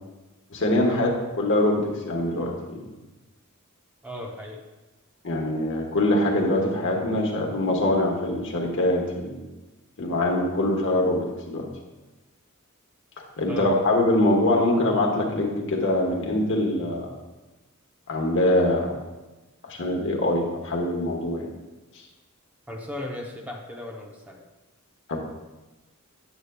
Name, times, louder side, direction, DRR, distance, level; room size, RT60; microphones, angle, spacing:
voice 1, 0.5-1.1 1.4-2.8 5.2-9.4 10.0-11.7 13.4-17.1 18.1-19.0 19.6-21.5 25.1-25.2, left 1 dB, 60° left, 0 dB, 1.1 m, -23 dB
voice 2, 4.0-4.6 13.5-13.7 22.7-24.4, left 1 dB, 5° right, 0 dB, 0.7 m, -36 dB
8.0 x 8.0 x 2.2 m, 1.1 s
head